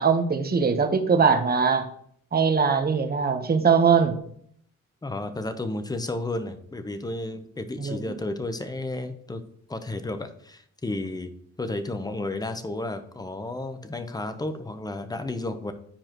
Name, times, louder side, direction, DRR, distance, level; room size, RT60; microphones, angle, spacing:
voice 1, 0.0-1.8 2.3-4.2 7.8-8.0, right 5 dB, 30° right, 6 dB, 1.0 m, -21 dB
voice 2, 5.0-9.4 9.7-11.3 11.6-15.7, left 2 dB, 15° left, 9 dB, 0.8 m, -32 dB
10.0 x 4.8 x 3.0 m, 0.65 s
cardioid pair, 90°, 30 cm